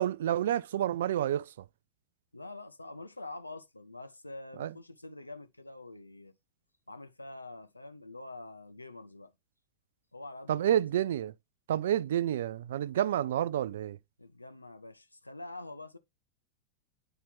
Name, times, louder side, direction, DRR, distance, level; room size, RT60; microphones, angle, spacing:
voice 1, 0.0-1.5 4.6-4.7 10.5-11.3 11.7-14.0, right 11 dB, 60° right, 0.3 m, -29 dB
voice 2, 2.3-6.4 6.9-9.3 10.1-11.1 14.2-16.0, left 2 dB, 85° left, 0.6 m, -46 dB
8.5 x 4.4 x 3.4 m
figure-of-eight pair, 90°, 0 cm